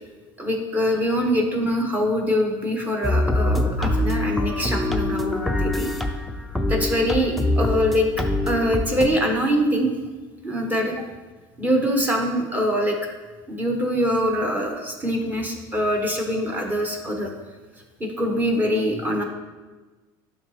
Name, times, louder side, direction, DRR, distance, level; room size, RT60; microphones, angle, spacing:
voice 1, 0.4-5.9 6.7-8.1 8.4-9.9 10.4-11.0 11.6-13.0 13.5-17.3 18.0-19.2, equal, 15° right, 1 dB, 1.3 m, -23 dB
sound 1, 3.0-9.1, left 1 dB, ahead, 0.5 m, -24 dB
11.5 x 3.9 x 3.3 m, 1.3 s
supercardioid pair, 120°, 11 cm